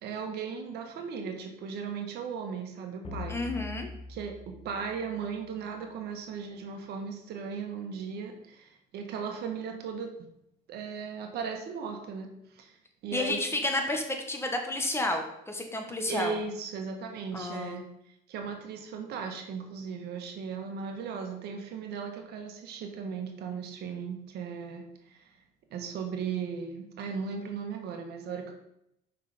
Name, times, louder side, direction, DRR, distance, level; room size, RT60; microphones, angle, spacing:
voice 1, 0.0-3.4 4.1-10.1 10.7-12.3 12.5-12.8 13.0-13.4 16.1-17.9 18.3-25.3 25.7-28.5, right 6 dB, 75° right, 4 dB, 1.5 m, -37 dB
sound 1, 3.0-5.7, left 5 dB, 35° left, 1.4 m, -43 dB
voice 2, 3.3-3.9 13.1-16.3 17.3-17.8, left 2 dB, 15° left, 3 dB, 1.4 m, -31 dB
6.7 x 5.8 x 5.1 m, 0.78 s
cardioid pair, 110°, 17 cm